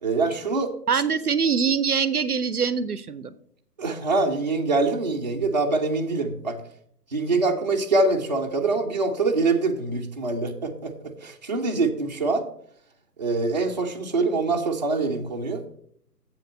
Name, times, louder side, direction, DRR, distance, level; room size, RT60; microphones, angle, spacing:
voice 1, 0.0-0.7 3.8-6.6 7.1-10.9 11.2-12.4 13.2-15.6, right 3 dB, 25° right, 0 dB, 0.7 m, -24 dB
voice 2, 0.9-3.3, right 6 dB, 65° right, 16 dB, 0.7 m, -23 dB
7.7 x 7.5 x 5.3 m, 0.65 s
figure-of-eight pair, 145°, 48 cm